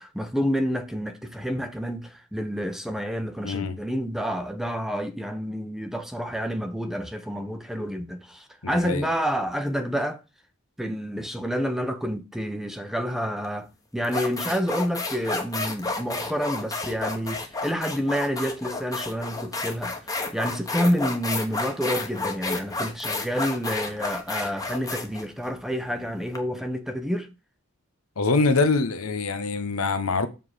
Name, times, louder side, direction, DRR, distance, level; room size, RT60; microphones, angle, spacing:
voice 1, 0.0-10.2 10.8-13.7 13.9-20.0 20.3-27.3, equal, ahead, 0.8 m, -28 dB
voice 2, 3.4-3.8 8.6-9.1 28.2-30.3, left 3 dB, 90° left, 1.0 m, -24 dB
sound 1, 13.4-13.6 14.0-26.4, left 3 dB, 15° left, 1.2 m, -31 dB
7.3 x 3.8 x 6.4 m
head